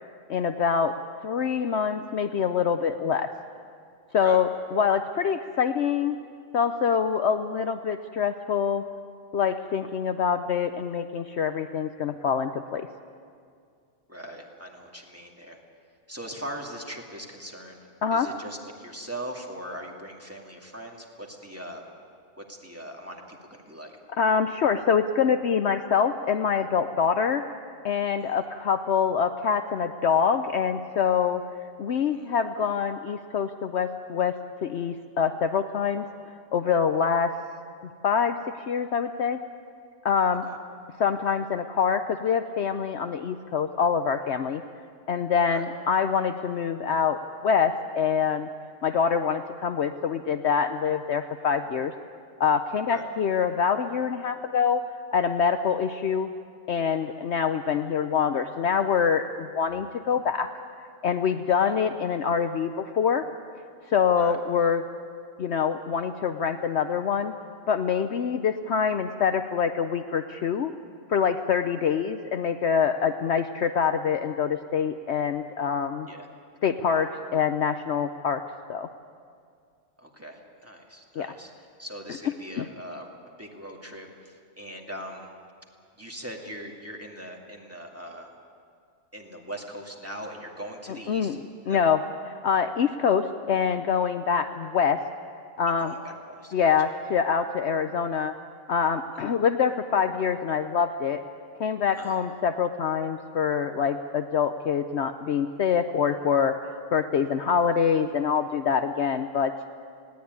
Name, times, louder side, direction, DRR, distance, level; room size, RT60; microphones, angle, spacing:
voice 1, 0.3-0.9 1.2-3.3 4.1-6.2 6.5-8.8 9.3-12.9 18.0-18.3 24.2-27.4 27.8-31.4 31.8-34.4 34.6-36.0 36.5-37.3 38.0-38.4 38.7-39.4 40.0-40.4 41.0-44.6 45.1-47.2 47.4-48.5 48.8-51.9 52.4-54.8 55.1-56.3 56.7-60.5 61.0-63.2 63.9-64.8 65.4-67.3 67.7-70.7 71.1-76.1 76.6-78.4 78.7-78.9 81.2-81.3 82.6-82.7 91.1-91.4 91.7-92.0 92.4-95.0 95.6-95.9 96.5-98.3 98.7-101.2 101.6-109.5, left 7 dB, 60° left, 8 dB, 0.9 m, -25 dB
voice 2, 14.1-15.6 16.1-17.8 18.1-21.8 22.4-23.9 28.2-28.4 32.0-32.3 40.4-40.6 45.5-45.6 52.9-53.1 61.5-61.6 64.1-64.4 76.1-76.3 80.0-81.5 81.8-83.1 83.4-85.3 86.0-88.3 89.1-91.4 91.6-91.8 95.8-96.7 101.9-102.2, equal, 10° right, 0 dB, 2.3 m, -40 dB
20.0 x 17.0 x 9.5 m, 2.2 s
omnidirectional pair, 1.4 m